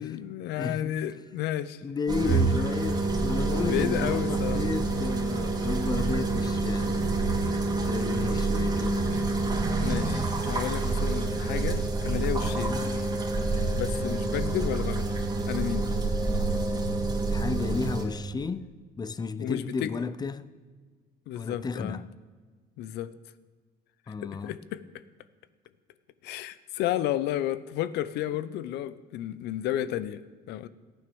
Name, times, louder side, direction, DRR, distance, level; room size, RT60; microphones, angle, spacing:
voice 1, 0.0-1.8 2.2-2.4 3.6-4.6 9.8-12.9 13.7-15.9 19.4-20.0 21.3-22.0 22.8-23.1 24.1-24.8 26.2-30.7, left 12 dB, 85° left, 0.7 m, -32 dB
voice 2, 0.6-1.0 1.8-7.1 7.9-9.1 12.6-12.8 17.3-18.7 19.0-20.5 21.3-22.0 24.1-24.5, left 4 dB, 25° left, 0.6 m, -33 dB
sound 1, 2.1-18.0, right 3 dB, 25° right, 2.5 m, -27 dB
14.5 x 9.3 x 7.0 m
cardioid pair, 110°, 17 cm